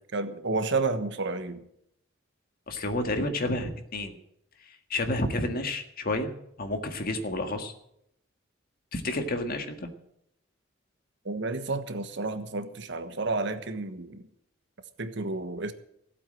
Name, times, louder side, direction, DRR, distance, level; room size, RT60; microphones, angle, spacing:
voice 1, 0.1-1.7 11.2-14.2 15.0-15.7, right 3 dB, 65° right, 9 dB, 1.3 m, -31 dB
voice 2, 2.7-4.2 4.7-6.3 6.6-7.7 8.9-9.9, left 2 dB, 50° left, 6 dB, 1.8 m, -30 dB
15.5 x 8.4 x 7.6 m, 0.75 s
head